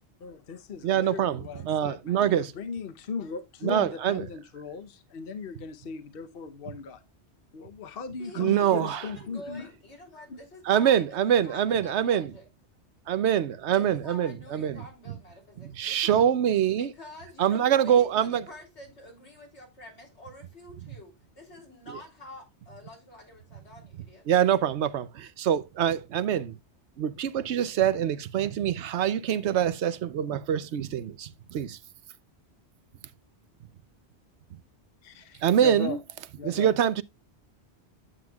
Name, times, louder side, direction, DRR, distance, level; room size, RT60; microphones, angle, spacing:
voice 1, 0.2-7.0 7.5-9.7 10.3-10.4 35.0-36.0 36.4-36.7, left 5 dB, 60° left, 1.0 m, -38 dB
voice 2, 0.8-2.5 3.6-4.2 8.4-9.1 10.7-12.3 13.1-15.2 15.6-16.9 17.4-18.4 24.3-26.6 27.0-31.8 34.5-34.6 35.4-36.0 36.4-37.0, right 9 dB, 80° right, 1.0 m, -25 dB
voice 3, 8.2-12.4 13.7-16.2 16.8-24.2, left 1 dB, 85° left, 3.6 m, -47 dB
9.6 x 7.8 x 2.3 m
omnidirectional pair, 1.1 m